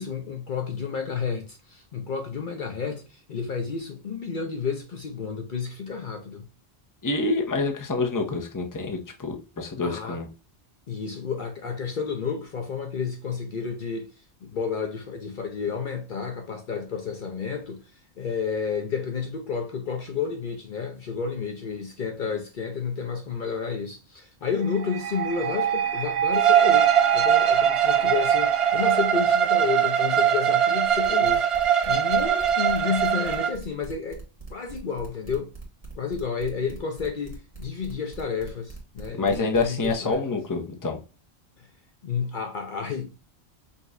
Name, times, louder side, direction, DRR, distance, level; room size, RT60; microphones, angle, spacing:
voice 1, 0.0-6.5 9.8-10.2 10.9-34.2 34.5-35.5 36.0-40.2 41.6-41.7 42.0-43.1, left 6 dB, 55° left, 0.8 m, -31 dB
voice 2, 7.0-10.3 39.2-41.0, left 3 dB, 20° left, 0.8 m, -27 dB
sound 1, 24.6-29.6, right 9 dB, 80° right, 0.9 m, -29 dB
Bowed string instrument, 26.3-33.5, right 9 dB, 50° right, 0.4 m, -21 dB
sound 2, 31.0-40.1, right 3 dB, 35° right, 1.5 m, -42 dB
5.3 x 3.0 x 2.5 m
omnidirectional pair, 1.1 m